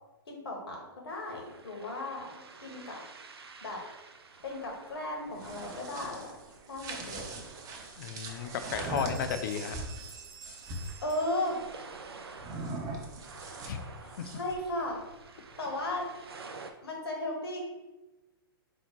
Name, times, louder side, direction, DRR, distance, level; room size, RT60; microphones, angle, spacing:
voice 1, 0.3-3.0 3.6-3.8 4.4-6.3 6.7-7.4 11.0-11.6 14.0-15.0 15.6-16.1 16.8-17.6, left 1 dB, 75° left, 0 dB, 1.2 m, -36 dB
sound 1, 1.1-16.7, right 4 dB, 85° right, 0.5 m, -50 dB
sound 2, 5.2-11.0 12.4-14.7, right 2 dB, 30° right, 0.6 m, -41 dB
sound 3, 7.8-7.9 8.3-8.6 8.8-12.0, right 6 dB, 60° right, 1.0 m, -50 dB
voice 2, 8.0-9.8 13.6-13.8 14.2-14.3, left 8 dB, 55° left, 9 dB, 0.4 m, -34 dB
4.4 x 2.1 x 4.4 m, 1.1 s
hypercardioid pair, 110°, 13 cm